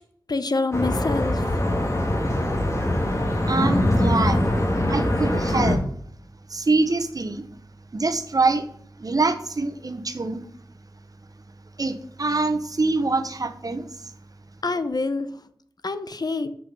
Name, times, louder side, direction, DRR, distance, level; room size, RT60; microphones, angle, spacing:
voice 1, 0.3-1.6 14.6-15.3 15.8-16.5, left 3 dB, 60° left, 11 dB, 0.7 m, -26 dB
sound 1, 0.7-5.8, left 1 dB, 40° left, 1.9 m, -22 dB
voice 2, 3.5-4.4 4.9-5.8 6.5-7.5 7.9-8.7 9.0-10.4 11.8-14.1, right 3 dB, 50° right, 9 dB, 1.0 m, -24 dB
6.2 x 6.1 x 6.7 m, 0.64 s
wide cardioid pair, 65°, 8 cm